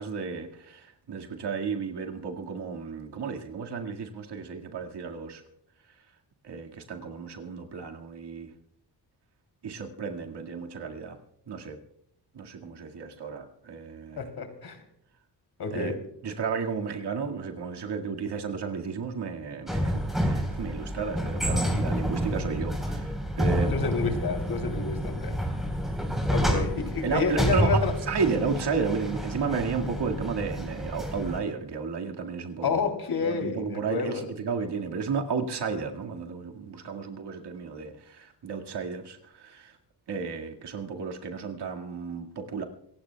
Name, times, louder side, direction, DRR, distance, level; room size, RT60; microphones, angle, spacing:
voice 1, 0.0-5.4 6.4-8.5 9.6-11.2 11.5-11.8 12.3-14.3 15.7-16.0 16.2-23.7 26.4-26.6 27.0-32.8 33.2-39.7 40.1-42.6, right 5 dB, 65° right, 2.0 m, -33 dB
voice 2, 14.2-14.8 15.6-15.9 23.7-25.3 26.3-27.9 32.6-34.2, left 5 dB, 60° left, 3.2 m, -29 dB
sound 1, 19.7-31.4, equal, ahead, 4.0 m, -29 dB
27.0 x 16.0 x 2.3 m
cardioid pair, 95°, 43 cm